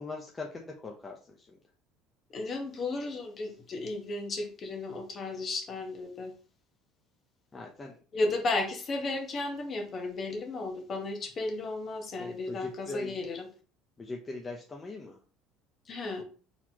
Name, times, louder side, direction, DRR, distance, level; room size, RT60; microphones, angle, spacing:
voice 1, 0.0-1.5 7.5-8.0 12.2-13.1 14.0-15.2, left 3 dB, 20° left, 1 dB, 0.7 m, -41 dB
voice 2, 2.3-6.3 8.1-13.5 15.9-16.2, left 2 dB, 35° left, 4 dB, 1.3 m, -34 dB
4.4 x 4.2 x 2.9 m, 0.38 s
cardioid pair, 120°, 0 cm